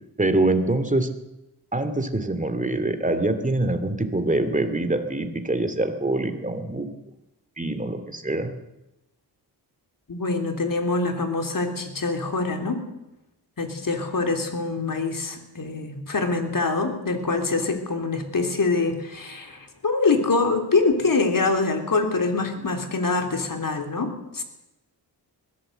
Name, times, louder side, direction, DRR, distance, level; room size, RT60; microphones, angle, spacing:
voice 1, 0.2-1.1 1.7-6.9 7.6-8.5, right 2 dB, 20° right, 8 dB, 2.5 m, -24 dB
voice 2, 10.1-12.8 13.6-24.4, left 3 dB, 50° left, 5 dB, 3.5 m, -24 dB
21.5 x 16.0 x 8.0 m, 0.95 s
wide cardioid pair, 85°, 42 cm